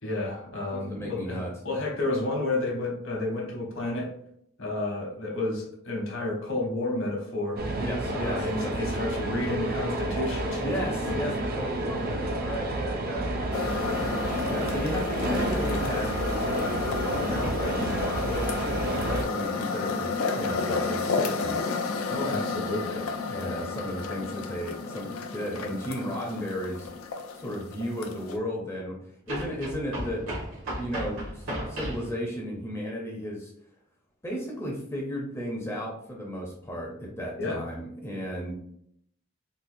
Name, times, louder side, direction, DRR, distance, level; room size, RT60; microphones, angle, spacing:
voice 1, 0.0-4.1 4.6-7.6 8.1-11.2 22.1-23.1 23.3-23.6 37.4-37.6, left 2 dB, 70° left, -2 dB, 1.0 m, -31 dB
voice 2, 0.7-1.5 7.8-8.7 10.6-13.8 14.5-21.7 23.3-26.9 27.4-29.0 29.3-30.2 30.8-33.5 34.2-38.5, equal, 15° left, -2 dB, 0.5 m, -34 dB
sound 1, 7.6-19.2, right 1 dB, 45° right, 0.4 m, -30 dB
sound 2, 13.5-28.4, left 4 dB, 85° left, 0.4 m, -32 dB
sound 3, 26.8-26.9 29.3-32.1, right 1 dB, 80° right, 1.5 m, -35 dB
3.9 x 2.2 x 2.6 m, 0.71 s
head